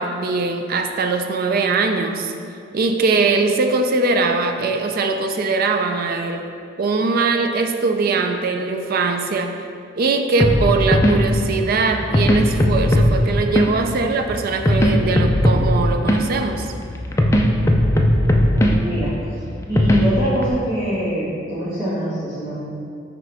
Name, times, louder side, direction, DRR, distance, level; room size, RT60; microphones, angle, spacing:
voice 1, 0.0-2.3 2.7-6.5 6.8-9.5 10.0-16.7, right 3 dB, 50° right, 6 dB, 0.4 m, -21 dB
sound 1, 10.4-20.5, equal, 15° left, 0.4 m, -19 dB
voice 2, 18.5-19.1 19.7-22.6, equal, 25° right, -13 dB, 1.6 m, -24 dB
10.0 x 3.8 x 3.4 m, 2.4 s
head